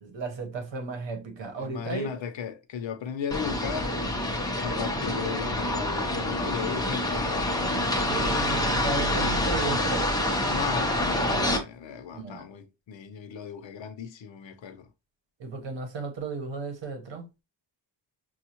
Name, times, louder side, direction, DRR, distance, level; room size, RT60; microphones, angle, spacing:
voice 1, 0.0-2.2 8.1-10.1 12.1-12.4 15.4-17.3, right 4 dB, 70° right, 1.1 m, -34 dB
voice 2, 1.6-4.0 4.6-7.6 9.1-9.4 10.5-14.9, left 7 dB, 75° left, 0.7 m, -36 dB
sound 1, 3.3-11.6, left 1 dB, 10° left, 0.6 m, -27 dB
6.1 x 2.4 x 2.9 m
wide cardioid pair, 160°, 46 cm